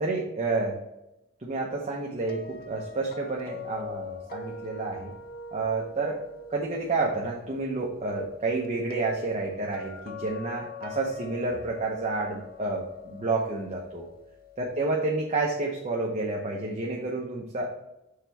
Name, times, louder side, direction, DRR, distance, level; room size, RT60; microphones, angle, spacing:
voice 1, 0.0-0.8 1.4-5.1 5.5-6.2 6.5-14.1 14.6-17.8, right 3 dB, 30° right, -2 dB, 0.9 m, -30 dB
sound 1, 2.3-15.1, left 4 dB, 45° left, 0.7 m, -44 dB
6.7 x 4.0 x 4.5 m, 0.91 s
head